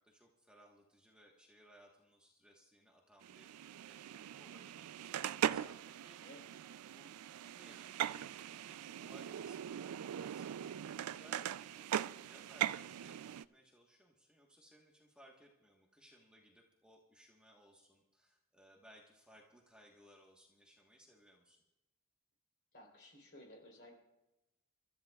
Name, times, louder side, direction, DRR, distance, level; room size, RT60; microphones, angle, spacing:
voice 1, 0.0-3.5 3.9-6.2 6.8-7.2 7.5-21.6, equal, 5° right, -2 dB, 1.2 m, -64 dB
sound 1, 3.2-13.5, right 10 dB, 85° right, 0.3 m, -41 dB
voice 2, 6.2-6.6 11.1-11.4 22.7-24.0, left 1 dB, 50° left, 1 dB, 3.6 m, -57 dB
29.5 x 13.5 x 2.3 m, 0.99 s
head